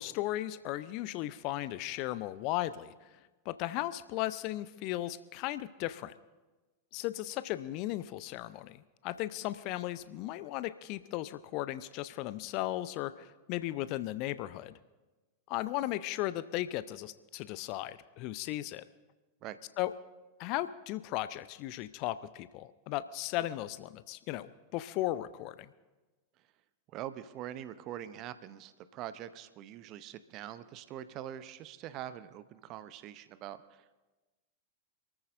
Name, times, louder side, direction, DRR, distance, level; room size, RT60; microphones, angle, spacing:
voice 1, 0.0-2.9 3.5-6.1 6.9-14.7 15.5-18.8 19.8-19.9 20.4-25.7, left 15 dB, 45° left, 15 dB, 0.5 m, -36 dB
voice 2, 26.9-33.9, right 11 dB, 40° right, 14 dB, 0.6 m, -44 dB
27.0 x 13.5 x 2.6 m, 1.2 s
figure-of-eight pair, 90°, 0 cm